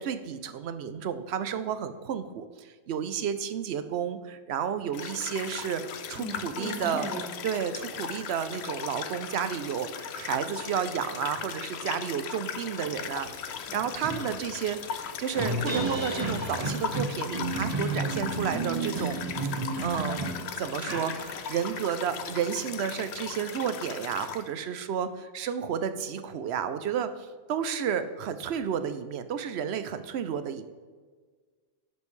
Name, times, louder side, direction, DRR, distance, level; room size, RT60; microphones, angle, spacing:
voice 1, 0.0-7.1 7.4-19.5 19.8-27.1 27.5-30.6, right 8 dB, 85° right, 11 dB, 0.9 m, -32 dB
sound 1, 4.9-24.5, left 7 dB, 85° left, 0.9 m, -38 dB
voice 2, 6.2-7.3, right 1 dB, ahead, -2 dB, 1.5 m, -36 dB
sound 2, 13.2-13.3 13.7-21.7, right 2 dB, 35° right, 1.3 m, -32 dB
11.0 x 5.3 x 3.2 m, 1.5 s
omnidirectional pair, 1.1 m